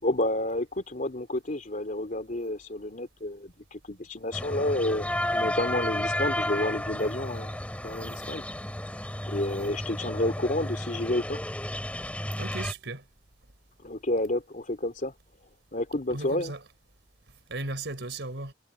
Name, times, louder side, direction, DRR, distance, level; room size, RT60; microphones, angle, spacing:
voice 1, 0.0-7.6 7.8-8.4 9.3-11.4 13.8-15.1 15.7-16.5, left 1 dB, 45° left, 3.2 m, -30 dB
sound 1, 4.3-12.7, left 1 dB, 10° left, 2.7 m, -32 dB
voice 2, 12.4-13.0 16.1-16.6 17.5-18.5, right 2 dB, 75° right, 4.0 m, -36 dB
head